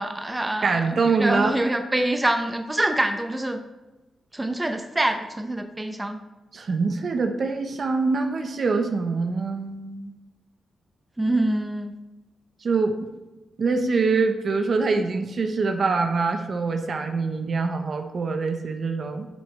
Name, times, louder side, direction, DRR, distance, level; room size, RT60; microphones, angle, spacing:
voice 1, 0.0-3.6 4.3-6.2 11.2-11.9, right 1 dB, 15° right, 5 dB, 0.8 m, -25 dB
voice 2, 0.6-1.6 6.5-10.1 12.6-13.0 13.6-19.3, right 4 dB, 55° right, 5 dB, 1.0 m, -24 dB
11.0 x 5.9 x 3.3 m, 1.1 s
cardioid pair, 65°, 0 cm